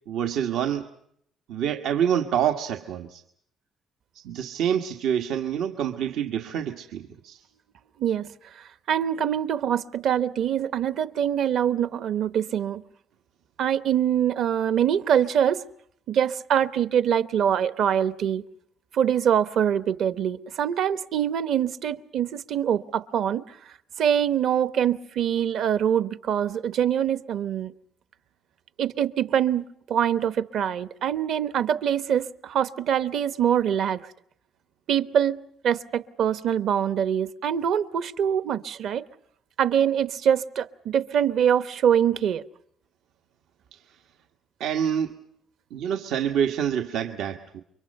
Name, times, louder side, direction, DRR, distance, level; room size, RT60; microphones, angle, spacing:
voice 1, 0.1-0.9 1.5-3.2 4.2-7.4 43.7-44.0 44.6-45.2 45.7-47.6, right 9 dB, 85° right, 1.4 m, -27 dB
voice 2, 8.0-12.8 13.6-15.6 16.1-18.4 18.9-27.7 28.8-34.1 34.9-35.4 35.6-39.1 39.6-42.4, right 9 dB, 60° right, 1.0 m, -24 dB
30.0 x 24.5 x 5.4 m
cardioid pair, 175°, 0 cm